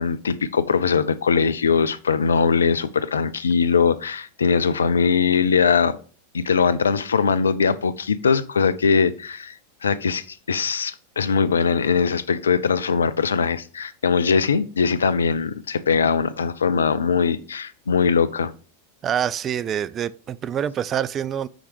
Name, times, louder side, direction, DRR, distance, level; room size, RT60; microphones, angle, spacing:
voice 1, 0.0-6.0 6.3-9.5 9.8-18.5, left 5 dB, 70° left, 0.5 m, -21 dB
voice 2, 19.0-21.5, right 9 dB, 25° right, 0.3 m, -26 dB
6.4 x 4.8 x 4.7 m
figure-of-eight pair, 90°, 0 cm